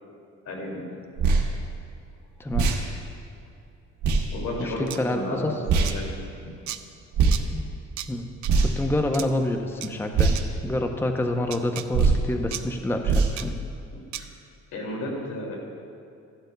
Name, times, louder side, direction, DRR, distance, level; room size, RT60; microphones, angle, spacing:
voice 1, 0.4-0.8 4.3-6.1 13.9-14.3 14.7-15.6, left 1 dB, 75° left, -1 dB, 2.6 m, -33 dB
sound 1, 1.2-1.4 2.5-2.8 4.0-4.2 5.7-5.9 7.1-7.4 8.4-8.9 10.1-10.4 11.9-12.2 13.0-13.3, right 4 dB, 85° right, 1.4 m, -20 dB
voice 2, 2.4-2.7 4.6-5.6 7.5-7.7 8.1-8.3 8.6-13.5, left 1 dB, 10° left, 4 dB, 0.7 m, -28 dB
sound 2, 4.9-5.0 5.8-6.0 6.7-6.8 7.3-7.4 8.0-8.1 8.4-8.5 9.1-9.3 9.8-9.9 10.3-10.4 11.5-11.9 12.5-12.6 13.4-13.5 14.1-14.2, right 12 dB, 70° right, 0.6 m, -34 dB
15.5 x 11.5 x 2.3 m, 2.6 s
cardioid pair, 90°, 30 cm